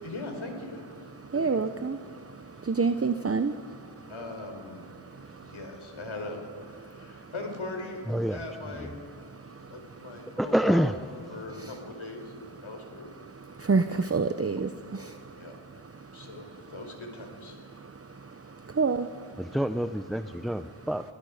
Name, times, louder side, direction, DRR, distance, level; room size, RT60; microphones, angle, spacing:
voice 1, 0.0-1.9 4.1-4.9 5.4-8.0 8.3-9.0 9.5-13.1 15.3-15.6 16.1-17.8 19.8-19.9, left 2 dB, 70° left, 4 dB, 4.3 m, -40 dB
voice 2, 1.3-2.0 2.7-3.5 13.7-14.7 18.8-19.1, right 4 dB, 30° right, 9 dB, 0.8 m, -25 dB
voice 3, 10.4-10.9 19.4-21.0, equal, ahead, 10 dB, 0.6 m, -26 dB
29.0 x 20.0 x 5.1 m, 2.4 s
cardioid pair, 40°, 49 cm